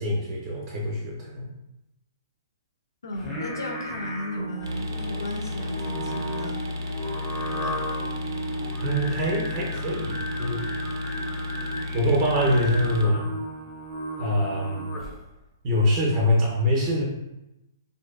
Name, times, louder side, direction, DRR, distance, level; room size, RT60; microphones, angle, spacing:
voice 1, 0.0-1.5 8.8-10.6 11.9-13.3 14.2-14.9 15.6-17.0, left 1 dB, 35° right, -3 dB, 0.5 m, -24 dB
voice 2, 3.0-6.6 7.5-7.8 14.8-14.9, left 1 dB, 85° left, 2 dB, 0.5 m, -35 dB
Singing, 3.1-15.3, right 1 dB, 15° left, 0.5 m, -35 dB
sound 1, 4.6-13.0, left 2 dB, 90° right, 0.4 m, -33 dB
2.5 x 2.2 x 2.3 m, 0.93 s
hypercardioid pair, 145°, 2 cm